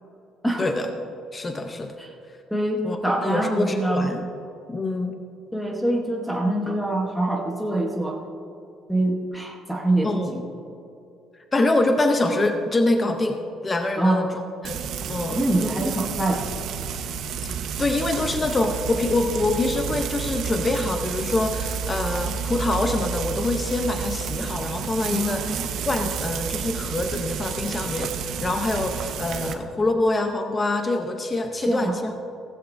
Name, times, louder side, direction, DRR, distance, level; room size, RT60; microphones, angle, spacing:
voice 1, 1.3-1.9 2.8-3.0 3.2-4.3 4.7-5.2 10.0-10.4 11.5-15.4 17.4-25.6 25.9-32.1, left 2 dB, 15° left, 5 dB, 0.7 m, -25 dB
voice 2, 2.5-4.1 5.5-8.2 8.9-10.4 14.0-14.2 15.4-16.5 25.1-25.7 31.5-32.0, right 1 dB, ahead, 0 dB, 1.1 m, -24 dB
Frying (food), 14.6-29.5, right 6 dB, 55° right, 0.8 m, -30 dB
16.0 x 15.5 x 2.6 m, 2.6 s
cardioid pair, 165°, 0 cm